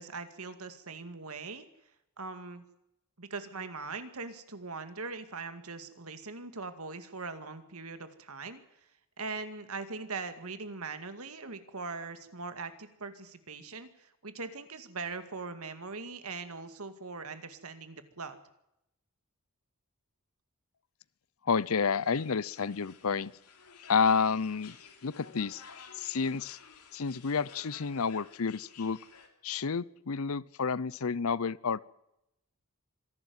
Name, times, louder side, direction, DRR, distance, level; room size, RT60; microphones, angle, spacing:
voice 1, 0.0-1.7 2.2-2.6 3.2-8.6 9.2-18.4, right 4 dB, 75° right, 10 dB, 2.2 m, -41 dB
voice 2, 21.5-23.3 23.9-24.8 25.0-25.6 26.0-26.6 26.9-29.0 29.4-31.8, left 5 dB, 70° left, 21 dB, 0.7 m, -30 dB
sound 1, 21.6-29.3, left 6 dB, 85° left, 3.3 m, -54 dB
25.5 x 12.0 x 9.6 m, 0.84 s
head